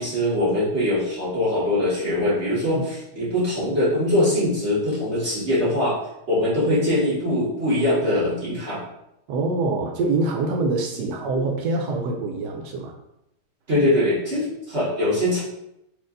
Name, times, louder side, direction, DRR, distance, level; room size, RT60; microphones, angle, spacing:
voice 1, 0.0-6.0 6.3-8.8 11.0-11.4 13.7-15.4, left 1 dB, 40° right, -8 dB, 1.7 m, -22 dB
voice 2, 9.3-12.9, right 3 dB, 85° right, 2 dB, 1.3 m, -25 dB
4.4 x 2.8 x 3.8 m, 0.83 s
omnidirectional pair, 1.8 m